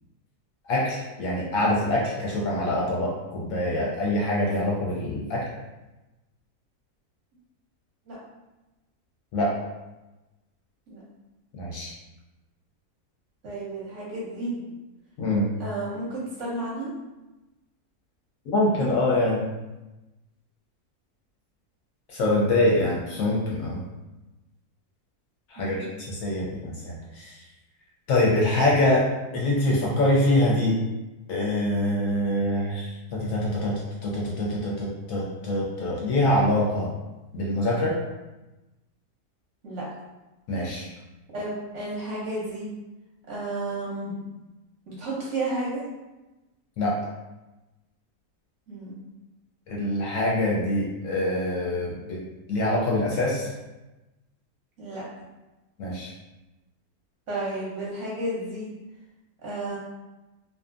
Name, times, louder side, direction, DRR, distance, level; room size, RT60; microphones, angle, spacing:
voice 1, 0.7-5.5 9.3-9.5 11.5-11.9 15.2-15.5 18.5-19.4 22.1-23.8 25.5-27.4 28.1-30.8 31.3-36.9 37.3-38.0 40.5-40.9 46.8-47.0 49.7-52.2 52.5-53.5 55.8-56.1, left 1 dB, 70° left, -4 dB, 0.9 m, -25 dB
voice 2, 13.4-14.7 15.6-16.9 22.4-22.7 25.6-25.9 39.6-39.8 41.3-42.7 43.3-44.2 44.9-45.8 48.7-49.0 54.8-55.0 57.3-58.7 59.4-59.8, right 2 dB, 60° right, -6 dB, 0.8 m, -32 dB
2.6 x 2.3 x 2.4 m, 1.1 s
omnidirectional pair, 1.7 m